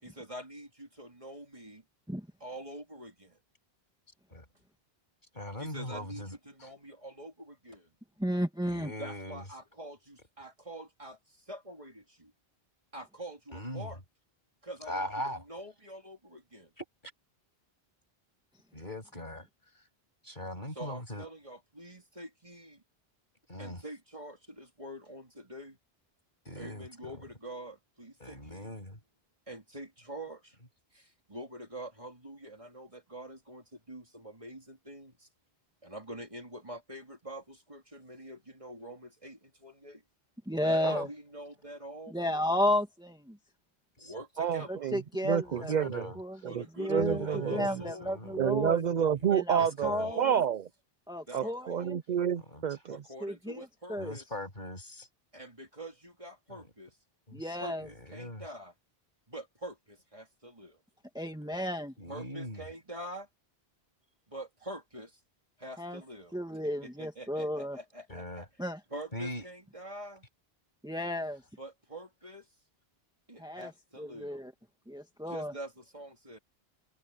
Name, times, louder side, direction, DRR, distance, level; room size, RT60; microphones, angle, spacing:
voice 1, 0.0-1.8 2.4-3.4 5.6-7.9 9.0-11.2 11.5-12.3 12.9-14.0 14.6-16.7 20.7-22.8 23.6-25.8 26.6-28.8 29.5-30.6 30.9-35.3 35.8-40.0 40.6-42.5 44.0-44.9 46.4-48.1 49.5-50.5 51.3-51.9 52.9-54.2 55.3-56.9 57.6-58.7 59.3-60.8 62.1-63.3 64.3-65.1 65.6-66.3 66.6-68.5 68.9-70.2 71.6-72.4 73.3-74.4 75.3-76.4, right 1 dB, 30° right, 3.3 m, -45 dB
voice 2, 5.3-6.7 8.6-9.4 13.5-13.9 14.9-15.4 16.8-16.9 18.7-19.5 20.2-21.3 23.5-23.8 26.5-27.2 28.2-29.0 40.8-41.1 44.0-44.1 45.4-46.2 47.0-48.7 49.6-50.1 52.5-52.6 54.0-55.1 56.5-56.7 57.3-57.6 57.8-58.5 62.0-62.6 68.1-68.5 69.1-69.4, left 1 dB, 50° left, 7.0 m, -40 dB
voice 3, 8.2-8.9 40.5-41.1 42.1-43.2 44.9-45.7 46.2-46.4 46.8-48.8 49.3-50.3 51.1-52.0 53.2-54.1 57.3-57.9 61.2-61.9 65.8-66.0 66.3-67.8 68.6-68.8 70.8-71.4 73.4-73.7 74.0-74.5 74.9-75.5, left 1 dB, 5° right, 2.0 m, -33 dB
voice 4, 44.4-46.1 46.4-46.6 46.9-47.7 48.4-49.9 50.2-50.6 51.3-53.0, right 8 dB, 55° right, 0.6 m, -29 dB
omnidirectional pair, 1.0 m